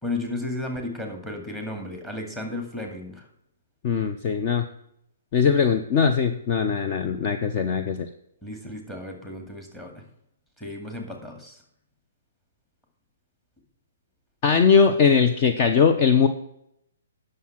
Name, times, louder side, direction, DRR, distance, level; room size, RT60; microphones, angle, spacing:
voice 1, 0.0-3.3 8.4-10.0 10.6-11.6, left 2 dB, 10° left, 2 dB, 2.2 m, -34 dB
voice 2, 3.8-4.7 5.3-8.1 14.4-16.3, left 6 dB, 35° left, 7 dB, 0.7 m, -20 dB
9.4 x 6.6 x 5.9 m, 0.75 s
hypercardioid pair, 145°, 0 cm